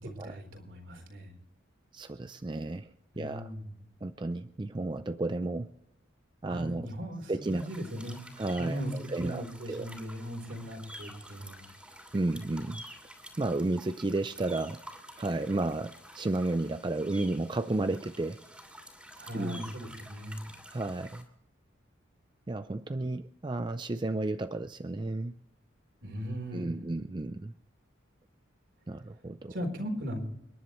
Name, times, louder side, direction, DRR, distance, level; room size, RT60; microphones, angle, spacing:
voice 1, 0.0-1.4 3.1-3.6 6.4-8.2 8.6-8.9 9.2-11.7 19.1-20.4 26.0-26.8 29.5-30.2, equal, 65° right, 2 dB, 4.0 m, -38 dB
voice 2, 1.9-3.5 4.0-5.7 6.4-6.9 7.3-7.7 8.4-9.9 12.1-12.8 13.4-14.8 15.2-18.4 19.3-19.7 20.7-21.3 22.5-25.4 26.5-27.5 28.9-29.5, right 2 dB, 25° right, 10 dB, 0.4 m, -32 dB
sound 1, 7.4-21.2, equal, 5° right, 2.8 m, -50 dB
29.5 x 11.0 x 3.1 m, 0.85 s
head